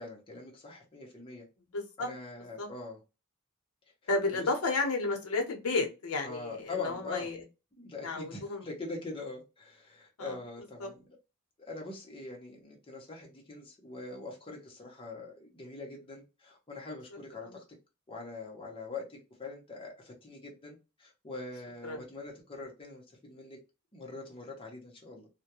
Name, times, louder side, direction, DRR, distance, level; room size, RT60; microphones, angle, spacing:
voice 1, 0.0-1.5 2.0-3.0 4.3-4.5 6.2-7.3 7.7-11.0 11.6-17.6 18.1-23.6 23.9-25.3, left 3 dB, 25° left, 0.7 m, -43 dB
voice 2, 1.7-2.1 2.6-2.7 4.1-7.4 8.0-8.6 10.2-10.4 10.8-10.9 17.4-17.6 21.8-22.1, left 3 dB, 80° left, 0.7 m, -32 dB
2.3 x 2.1 x 2.8 m
head